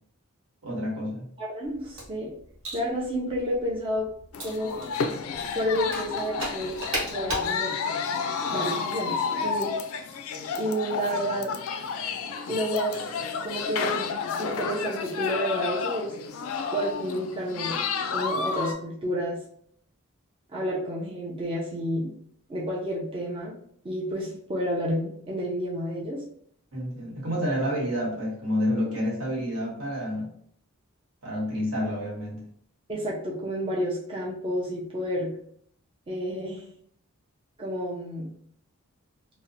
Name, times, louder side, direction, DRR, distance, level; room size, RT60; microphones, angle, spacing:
voice 1, 0.6-1.2 26.7-30.3 31.2-32.4, equal, 85° right, -3 dB, 1.1 m, -29 dB
voice 2, 1.4-2.3 2.7-4.1 4.4-4.9 5.5-6.8 7.1-7.7 8.5-9.7 10.6-11.5 12.5-13.0 13.4-14.1 14.4-16.1 16.7-17.8 18.1-19.4 20.5-22.1 22.5-23.5 23.8-26.2 32.9-35.3 36.1-36.6 37.6-38.3, equal, 25° right, -4 dB, 0.4 m, -30 dB
sound 1, 1.6-7.5, right 1 dB, 65° right, 1.2 m, -38 dB
sound 2, 4.3-18.7, left 5 dB, 70° left, 0.3 m, -31 dB
2.7 x 2.0 x 2.6 m, 0.65 s
head